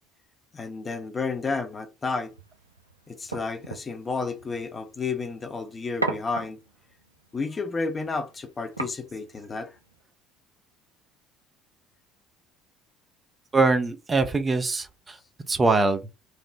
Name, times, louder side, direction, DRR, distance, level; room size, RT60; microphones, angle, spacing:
voice 1, 0.5-2.3 3.1-6.6 7.3-9.7, left 4 dB, 25° left, 0.5 m, -31 dB
sound 1, 2.3-10.0, right 3 dB, 90° right, 0.4 m, -39 dB
voice 2, 13.5-15.2 15.5-16.0, right 3 dB, 25° right, 0.5 m, -23 dB
3.2 x 2.0 x 2.5 m
figure-of-eight pair, 60°, 0 cm